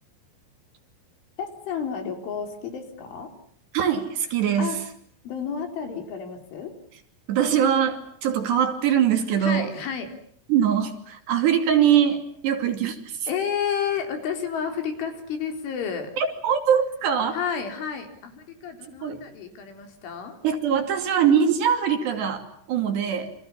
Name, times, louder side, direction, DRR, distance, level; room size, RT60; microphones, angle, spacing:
voice 1, 1.4-3.3 4.6-4.8 5.2-6.8 9.4-10.1 13.3-16.1 17.3-20.4, left 7 dB, 70° left, 6 dB, 6.2 m, -31 dB
voice 2, 3.7-4.8 7.3-9.7 10.5-13.3 16.2-17.4 19.0-19.2 20.4-23.3, right 8 dB, 60° right, 6 dB, 4.6 m, -22 dB
29.5 x 27.0 x 7.3 m, 0.62 s
omnidirectional pair, 5.7 m